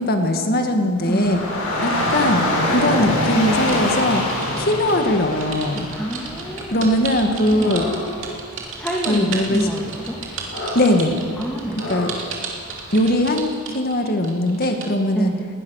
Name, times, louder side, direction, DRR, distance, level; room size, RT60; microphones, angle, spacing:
voice 1, 0.0-1.4 1.8-4.3 4.6-5.9 6.7-7.9 9.1-9.7 10.7-11.3 11.9-12.1 12.9-15.3, left 1 dB, 45° left, 4 dB, 2.0 m, -20 dB
Dog / Rain, 1.0-13.2, left 1 dB, 90° left, 7.0 m, -26 dB
voice 2, 1.1-1.5 1.8-2.0 5.9-6.9 7.5-7.7 8.7-10.2 11.4-11.9 15.1-15.4, right 1 dB, 5° left, -3 dB, 2.1 m, -27 dB
sound 1, 3.7-14.9, right 6 dB, 60° right, 3.2 m, -33 dB
20.5 x 19.0 x 6.6 m, 2.2 s
head